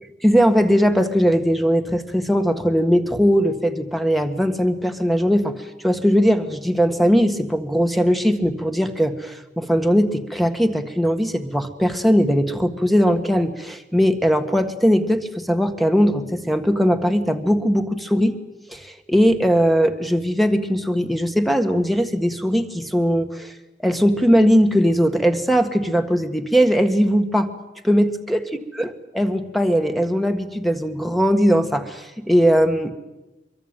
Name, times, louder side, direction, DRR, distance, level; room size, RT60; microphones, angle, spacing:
voice 1, 0.2-18.3 18.7-23.5 23.8-27.5 27.8-28.4 28.8-28.9 29.1-32.9, equal, ahead, 7 dB, 1.6 m, -19 dB
24.5 x 23.0 x 9.1 m, 1.0 s
head